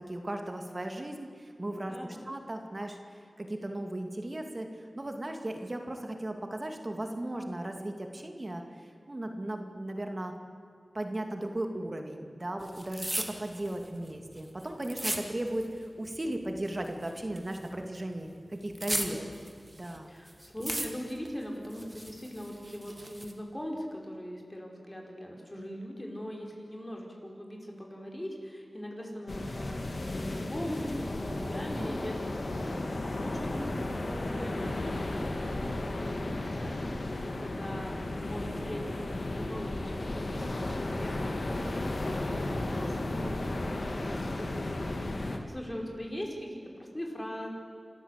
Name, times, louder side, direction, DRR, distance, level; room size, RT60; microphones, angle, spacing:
voice 1, 0.1-2.0 2.3-10.3 10.9-19.2 19.7-20.2 31.8-31.9, right 1 dB, 40° right, 4 dB, 2.4 m, -36 dB
voice 2, 1.9-2.3 19.0-19.4 20.1-47.5, equal, 20° left, 0 dB, 5.2 m, -41 dB
sound 1, 12.6-15.8 16.1-17.8 18.1-20.0 20.3-21.3 21.6-23.3, right 1 dB, 20° right, 2.5 m, -37 dB
sound 2, 29.3-45.4, left 2 dB, 65° left, 2.2 m, -34 dB
27.0 x 14.0 x 8.3 m, 2.3 s
wide cardioid pair, 50°, 0 cm